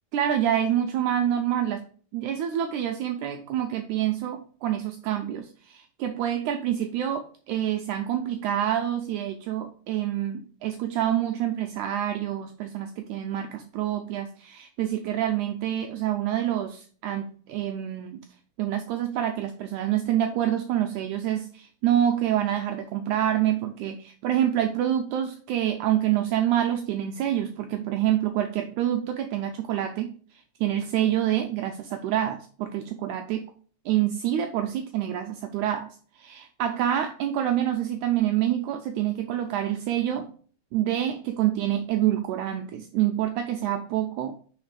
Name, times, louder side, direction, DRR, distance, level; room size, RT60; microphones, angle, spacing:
voice 1, 0.1-1.8 2.1-18.2 18.6-30.1 30.6-33.5 33.8-35.9 36.1-40.3 40.7-44.4, right 11 dB, 85° right, 5 dB, 1.7 m, -27 dB
5.0 x 4.0 x 4.9 m, 0.44 s
omnidirectional pair, 4.0 m